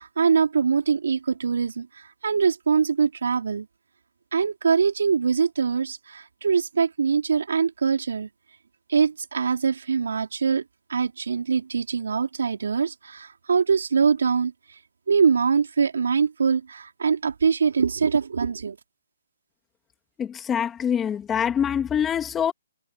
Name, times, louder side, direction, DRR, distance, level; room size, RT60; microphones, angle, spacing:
voice 1, 0.0-1.9 2.2-3.7 4.3-8.3 8.9-10.6 10.9-14.5 15.1-18.8, right 6 dB, 75° right, 4.2 m, -23 dB
voice 2, 20.2-22.5, left 8 dB, 10° left, 3.0 m, -25 dB
hypercardioid pair, 160°, 0 cm